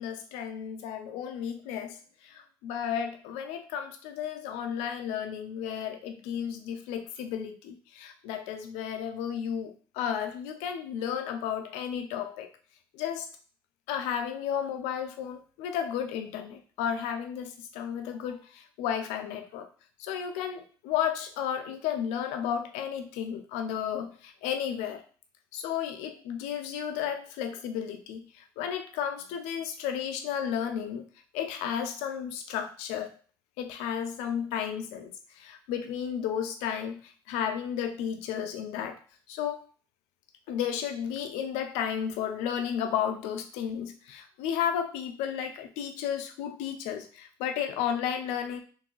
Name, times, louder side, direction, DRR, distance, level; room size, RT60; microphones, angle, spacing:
voice 1, 0.0-2.0 2.2-12.5 12.9-13.3 13.9-19.7 20.0-25.0 25.5-31.0 31.3-33.1 33.6-35.1 35.4-37.0 37.3-39.0 39.3-39.7 40.5-48.6, left 8 dB, 85° left, 7 dB, 0.5 m, -33 dB
3.7 x 2.6 x 3.0 m, 0.40 s
hypercardioid pair, 60°, 11 cm